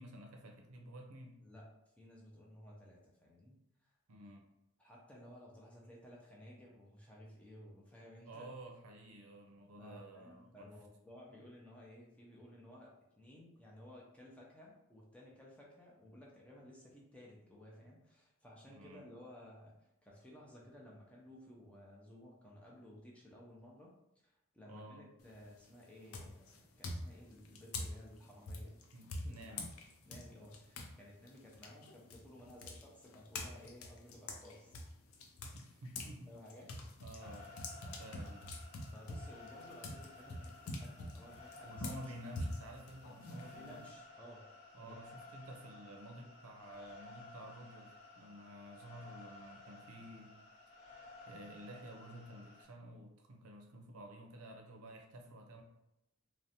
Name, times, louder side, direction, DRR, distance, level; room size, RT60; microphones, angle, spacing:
voice 1, 0.0-1.4 4.1-4.5 8.3-10.7 18.7-19.0 24.7-25.1 28.9-29.7 35.5-36.3 37.0-38.4 41.6-43.9 44.7-50.3 51.3-55.6, right 1 dB, 85° right, 3 dB, 0.5 m, -52 dB
voice 2, 1.4-1.7 2.0-3.9 4.8-8.6 9.8-23.9 24.2-28.8 29.1-29.7 30.1-34.8 36.3-36.9 37.2-38.3 38.9-42.0 43.4-44.5 44.8-45.0, left 1 dB, 5° left, -4 dB, 0.4 m, -56 dB
sound 1, 25.2-25.6 26.1-30.9 31.3-36.1 36.5-43.9, left 2 dB, 75° left, 0.4 m, -45 dB
sound 2, 37.2-52.6, left 2 dB, 55° left, 0.8 m, -55 dB
2.5 x 2.1 x 2.7 m, 0.87 s
head